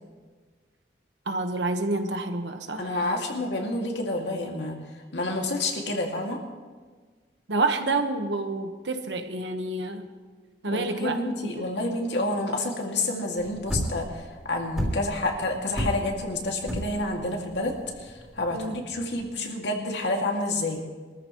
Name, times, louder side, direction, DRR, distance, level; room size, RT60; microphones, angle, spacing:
voice 1, 1.3-3.2 7.5-10.1 10.6-11.6 18.5-18.7, right 2 dB, 90° right, 6 dB, 1.3 m, -29 dB
voice 2, 2.8-4.8 5.1-6.4 10.7-17.7 18.0-20.8, left 2 dB, 80° left, 1 dB, 2.2 m, -29 dB
sound 1, 13.4-19.3, equal, 5° right, 3.2 m, -31 dB
23.5 x 14.0 x 3.1 m, 1.4 s
head